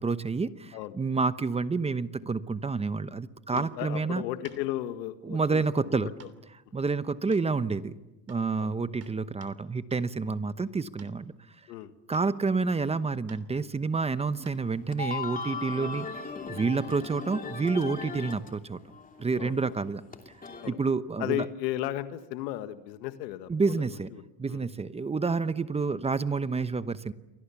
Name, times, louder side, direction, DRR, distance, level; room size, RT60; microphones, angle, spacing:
voice 1, 0.0-4.2 5.2-6.1 6.7-7.9 8.3-11.3 12.1-16.1 16.5-18.8 19.2-20.0 20.7-21.4 23.5-24.1 24.4-27.1, right 4 dB, 15° right, 13 dB, 0.9 m, -29 dB
voice 2, 3.5-6.1 8.6-8.7 11.7-11.9 15.7-15.9 19.4-19.6 20.6-20.8 21.2-24.2 24.5-24.6, left 14 dB, 85° left, 10 dB, 1.8 m, -35 dB
sound 1, 3.6-3.8 4.4-4.6 6.2-6.4 6.7-6.8 7.3-8.0 8.3-8.5 9.0-9.6 9.9-10.1 11.0-11.2 12.1-12.4 13.3-13.5 14.4-14.7 16.4-16.5, right 6 dB, 30° right, 3.1 m, -53 dB
sound 2, 14.1-14.2 14.7-18.5 18.7-20.7, left 4 dB, 15° left, 2.8 m, -38 dB
30.0 x 23.5 x 7.1 m, 1.0 s
supercardioid pair, 120°, 48 cm